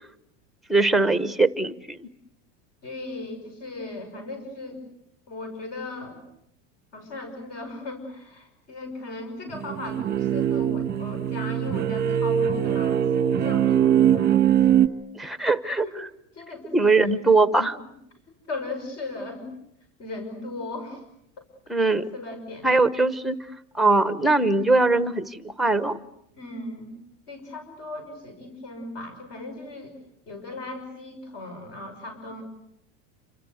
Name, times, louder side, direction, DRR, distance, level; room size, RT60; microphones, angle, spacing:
voice 1, 0.7-2.1 15.1-16.1 16.7-17.8 21.7-22.1 22.6-23.4 23.7-26.0, right 3 dB, ahead, 13 dB, 1.0 m, -21 dB
voice 2, 2.8-4.8 5.3-6.2 6.9-14.5 15.8-16.0 16.3-16.9 17.5-17.7 18.5-19.5 20.0-21.0 21.8-22.7 26.3-26.9 27.3-29.9 30.3-32.4, left 2 dB, 40° left, 7 dB, 5.9 m, -37 dB
sound 1, 9.5-14.9, right 10 dB, 25° right, 1.3 m, -22 dB
28.0 x 25.5 x 8.0 m, 0.79 s
supercardioid pair, 155°, 37 cm